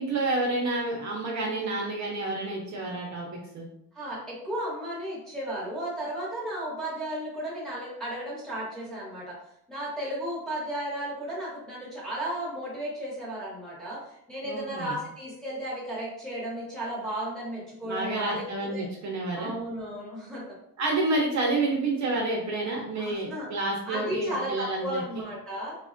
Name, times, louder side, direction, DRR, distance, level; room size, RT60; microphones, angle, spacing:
voice 1, 0.0-3.3 3.5-3.7 14.4-15.0 17.8-19.5 20.8-25.0, right 2 dB, 50° right, -2 dB, 0.7 m, -29 dB
voice 2, 3.9-9.4 9.7-14.0 14.3-18.4 18.7-18.8 19.3-20.4 23.0-23.5 23.9-25.8, right 1 dB, ahead, -8 dB, 0.9 m, -34 dB
3.3 x 2.1 x 2.4 m, 0.73 s
cardioid pair, 170°, 36 cm